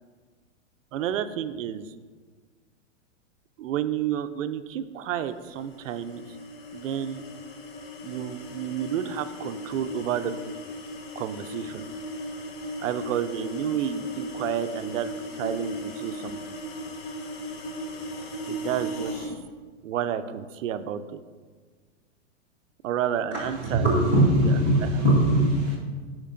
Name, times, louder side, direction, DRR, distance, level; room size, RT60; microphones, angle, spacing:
voice 1, 0.9-1.9 3.6-6.2 6.7-7.2 8.0-10.3 11.2-11.8 12.8-16.6 18.5-19.3 19.8-21.2 22.8-23.9 24.4-24.9, right 10 dB, 85° right, 11 dB, 0.5 m, -30 dB
sound 1, 5.4-19.4, equal, 50° left, 0.9 m, -37 dB
voice 2, 23.6-25.8, right 1 dB, 10° left, -9 dB, 0.3 m, -20 dB
11.0 x 4.4 x 2.5 m, 1.5 s
supercardioid pair, 170°, 38 cm